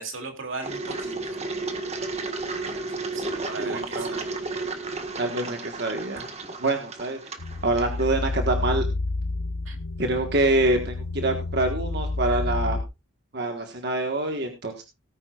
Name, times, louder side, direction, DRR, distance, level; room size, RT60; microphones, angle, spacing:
voice 1, 0.0-1.4 2.5-2.8 3.1-4.3 9.6-9.8, right 3 dB, 75° right, 3 dB, 2.6 m, -37 dB
Engine, 0.6-8.4, right 3 dB, 30° right, 1.6 m, -33 dB
voice 2, 3.6-4.1 5.2-6.2 6.6-7.2 7.6-8.9 10.0-12.8 13.3-14.8, right 2 dB, 55° right, 4 dB, 1.5 m, -25 dB
sound 1, 7.4-12.8, left 2 dB, 80° left, 0.8 m, -29 dB
18.0 x 9.9 x 2.4 m, 0.26 s
head